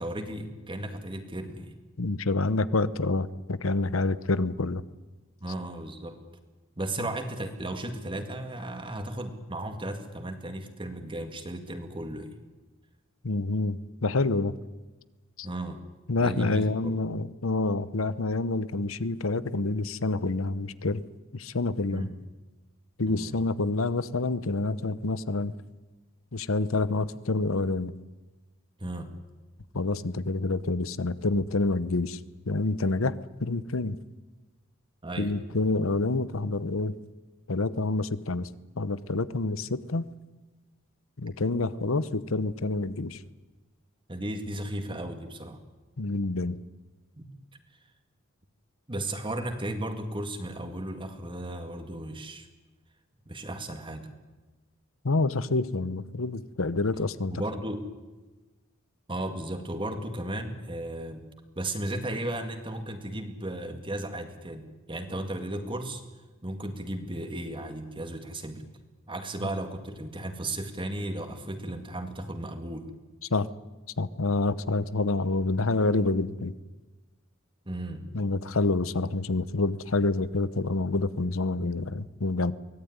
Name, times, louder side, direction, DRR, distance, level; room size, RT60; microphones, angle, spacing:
voice 1, 0.0-1.7 5.4-6.2 6.8-12.4 15.4-15.8 16.2-17.0 21.9-22.1 23.1-23.3 28.8-29.2 35.0-35.3 44.1-45.6 47.2-47.3 48.9-52.5 53.3-54.1 57.3-57.9 59.1-61.2 61.6-66.0 66.4-68.6 69.1-72.9 77.7-78.0, right 1 dB, 25° right, 6 dB, 2.1 m, -35 dB
voice 2, 2.0-4.8 7.0-7.1 13.2-14.5 15.4-15.5 16.1-21.0 21.3-22.1 23.0-25.5 26.3-27.9 29.7-32.2 32.5-34.0 35.2-36.9 37.5-38.5 38.8-40.0 41.2-43.2 46.0-46.6 55.0-57.3 73.3-73.5 74.0-76.5 78.1-82.5, left 2 dB, 75° left, 16 dB, 1.0 m, -27 dB
24.0 x 18.0 x 9.6 m, 1.2 s
head